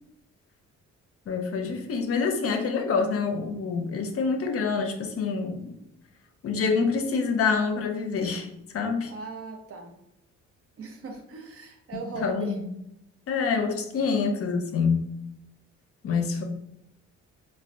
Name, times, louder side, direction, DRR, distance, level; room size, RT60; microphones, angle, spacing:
voice 1, 1.3-5.8 6.4-8.5 8.7-9.1 11.9-12.6 13.3-15.1 16.0-16.4, left 5 dB, 50° left, 4 dB, 0.5 m, -26 dB
voice 2, 9.1-9.9 10.8-12.5, right 4 dB, 50° right, 3 dB, 0.6 m, -38 dB
3.2 x 2.2 x 2.5 m, 0.81 s
cardioid pair, 90°, 30 cm